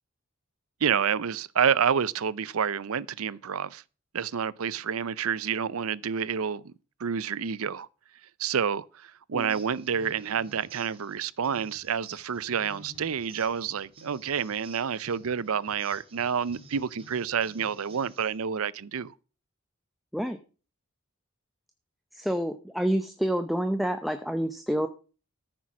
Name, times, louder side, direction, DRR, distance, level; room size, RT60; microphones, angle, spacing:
voice 1, 0.8-3.8 4.1-6.7 7.0-7.9 8.4-19.1, right 7 dB, 80° right, 0.5 m, -29 dB
sound 1, 9.4-18.4, right 2 dB, 25° right, 2.7 m, -52 dB
voice 2, 22.1-24.9, right 1 dB, ahead, 0.6 m, -28 dB
13.5 x 6.1 x 6.2 m
head